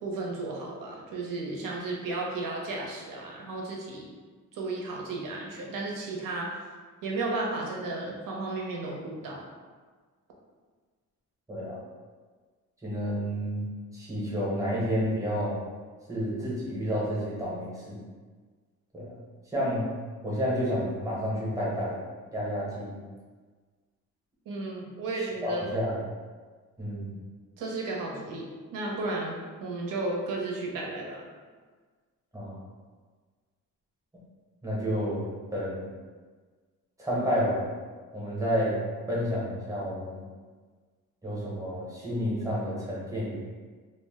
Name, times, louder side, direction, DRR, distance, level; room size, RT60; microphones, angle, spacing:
voice 1, 0.0-4.0 4.5-6.5 7.0-9.5 24.5-25.7 27.6-31.2, right 2 dB, 75° right, -2 dB, 0.7 m, -34 dB
voice 2, 12.8-13.6 13.9-15.6 16.1-18.0 18.9-19.1 19.5-19.8 20.2-22.0 22.3-23.0 25.4-26.0 26.8-27.2 32.3-32.6 34.6-35.9 37.0-37.7 38.1-38.8 39.1-40.2 41.2-43.4, equal, 10° right, -6 dB, 0.8 m, -30 dB
2.4 x 2.1 x 3.4 m, 1.5 s
cardioid pair, 155°, 33 cm